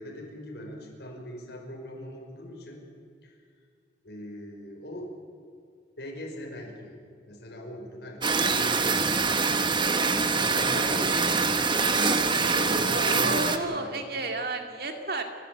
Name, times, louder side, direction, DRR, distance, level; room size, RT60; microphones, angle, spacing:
voice 1, 0.0-2.8 3.2-3.4 4.0-5.1 6.0-7.0 7.3-9.7 10.2-14.1, equal, 60° left, 0 dB, 5.4 m, -40 dB
sound 1, 8.2-13.6, right 4 dB, 25° right, 1.0 m, -24 dB
voice 2, 12.9-15.2, right 2 dB, 55° right, 4 dB, 2.2 m, -32 dB
30.0 x 12.5 x 8.6 m, 2.2 s
head